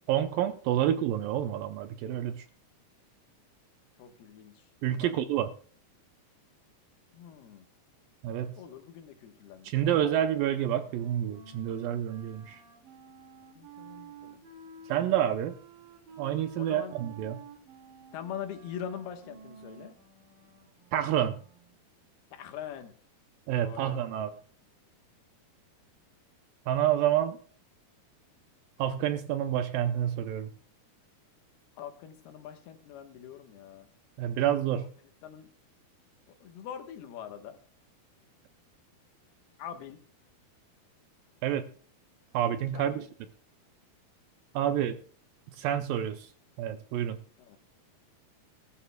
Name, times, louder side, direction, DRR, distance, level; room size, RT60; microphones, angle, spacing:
voice 1, 0.1-2.5 4.8-5.5 8.2-8.5 9.6-12.6 14.9-15.6 16.2-17.4 20.9-21.4 23.5-24.3 26.7-27.4 28.8-30.5 34.2-34.9 41.4-41.7 42.3-43.1 44.5-45.0 45.6-46.3 46.6-47.2, right 11 dB, 80° right, 10 dB, 2.2 m, -28 dB
voice 2, 4.0-4.7 5.0-5.2 7.1-7.7 8.6-10.1 13.6-14.4 16.6-17.0 18.1-20.0 22.3-22.9 23.6-23.9 31.8-33.9 35.2-35.5 36.4-37.6 39.6-40.0 42.7-43.1 44.7-44.9 47.4-47.6, left 9 dB, 80° left, 7 dB, 3.2 m, -43 dB
Wind instrument woodwind instrument, 9.7-21.8, right 5 dB, 60° right, 4.6 m, -51 dB
20.0 x 12.5 x 2.2 m, 0.43 s
omnidirectional pair, 4.5 m